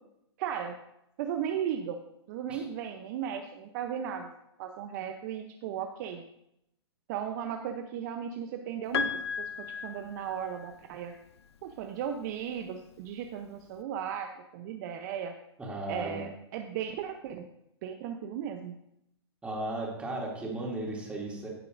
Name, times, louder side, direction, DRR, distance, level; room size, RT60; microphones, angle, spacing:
voice 1, 0.4-0.7 1.2-2.0 2.3-4.3 4.6-6.2 7.1-9.5 9.8-11.1 11.6-15.3 15.9-17.4 17.8-18.8, right 8 dB, 45° right, 5 dB, 0.7 m, -36 dB
Piano, 8.9-10.9 12.2-12.3, left 7 dB, 70° left, 0.7 m, -35 dB
voice 2, 15.6-16.2 19.4-21.5, right 2 dB, 10° right, -3 dB, 2.6 m, -35 dB
14.5 x 6.6 x 2.6 m, 0.81 s
hypercardioid pair, 125°, 14 cm